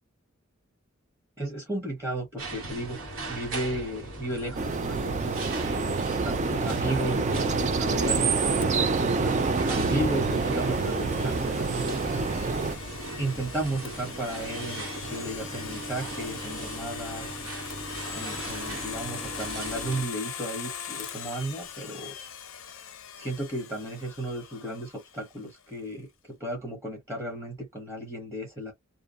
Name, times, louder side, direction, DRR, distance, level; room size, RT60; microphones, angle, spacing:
voice 1, 1.4-3.0 3.3-5.4 6.2-12.0 13.2-17.4 18.1-22.1 23.2-28.7, right 1 dB, 15° right, 0.9 m, -34 dB
sound 1, 2.4-20.0, right 2 dB, 85° right, 1.0 m, -38 dB
sound 2, 4.5-12.7, right 4 dB, 35° right, 0.4 m, -27 dB
Domestic sounds home sounds, 8.6-25.4, left 8 dB, 80° left, 0.6 m, -41 dB
2.7 x 2.0 x 2.4 m
head